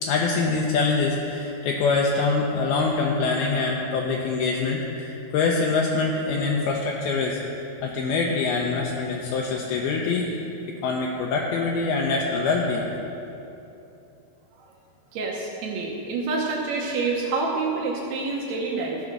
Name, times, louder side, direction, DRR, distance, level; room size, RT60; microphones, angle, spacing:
voice 1, 0.0-7.4 7.8-10.4 10.8-12.9, left 4 dB, 75° left, -1 dB, 2.5 m, -24 dB
voice 2, 15.1-19.0, right 3 dB, 80° right, -2 dB, 2.9 m, -27 dB
15.0 x 5.2 x 6.0 m, 2.9 s
omnidirectional pair, 4.7 m